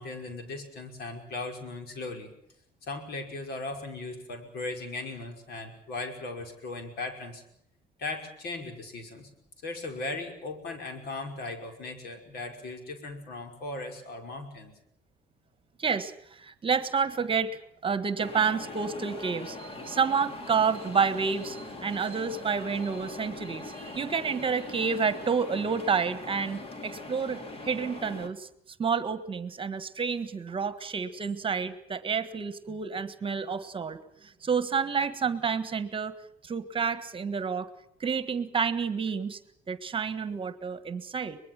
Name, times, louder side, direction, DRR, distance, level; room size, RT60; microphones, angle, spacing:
voice 1, 0.0-2.3 2.8-7.4 8.0-9.3 9.6-14.7, left 2 dB, 70° left, 5 dB, 5.5 m, -38 dB
voice 2, 15.8-28.5 28.8-36.1 36.4-37.7 38.0-39.4 39.7-41.4, right 6 dB, 30° right, 13 dB, 1.6 m, -29 dB
sound 1, 18.2-28.3, left 2 dB, 35° left, 2.9 m, -41 dB
24.0 x 21.0 x 7.5 m, 0.71 s
cardioid pair, 110°, 17 cm